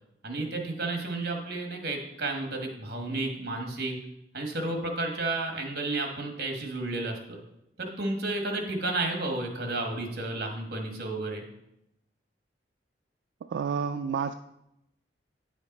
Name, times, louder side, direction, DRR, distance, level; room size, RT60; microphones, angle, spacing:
voice 1, 0.2-4.0 4.3-7.4 7.8-11.4, right 2 dB, 60° right, 3 dB, 1.4 m, -32 dB
voice 2, 13.4-14.3, right 6 dB, 85° right, 8 dB, 0.3 m, -30 dB
9.4 x 5.1 x 4.1 m, 0.84 s
head